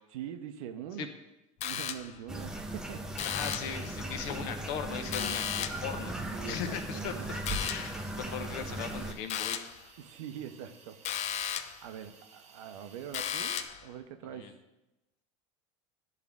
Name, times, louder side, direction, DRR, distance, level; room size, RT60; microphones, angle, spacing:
voice 1, 0.1-1.1 1.6-3.3 6.3-7.7 10.0-11.0 11.8-14.5, right 9 dB, 80° right, 7 dB, 0.7 m, -43 dB
sound 1, 1.6-2.3 3.2-3.8 5.1-5.9 7.5-8.0 9.3-9.8 11.0-11.8 13.1-13.9, left 9 dB, 40° left, 0.5 m, -35 dB
sound 2, 2.3-9.1, right 1 dB, 5° right, 0.6 m, -38 dB
voice 2, 3.2-6.2 6.4-7.4 7.7-9.6 14.3-14.5, left 7 dB, 60° left, 7 dB, 1.0 m, -38 dB
Hiss, 5.8-13.7, right 5 dB, 40° right, 1.1 m, -58 dB
10.5 x 3.6 x 3.5 m, 0.97 s
supercardioid pair, 105°, 17 cm